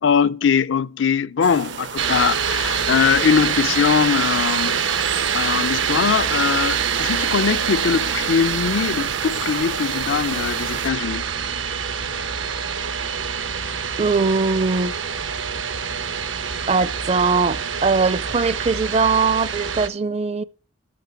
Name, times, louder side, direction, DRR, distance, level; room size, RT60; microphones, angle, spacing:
voice 1, 0.0-4.8 5.1-11.2, left 6 dB, 75° left, 0.4 m, -21 dB
sound 1, 1.4-10.9, right 6 dB, 65° right, 0.7 m, -34 dB
sound 2, 2.0-19.9, right 7 dB, 85° right, 1.0 m, -25 dB
voice 2, 14.0-14.9 16.7-20.4, right 4 dB, 35° right, 0.5 m, -20 dB
14.0 x 6.4 x 6.7 m
head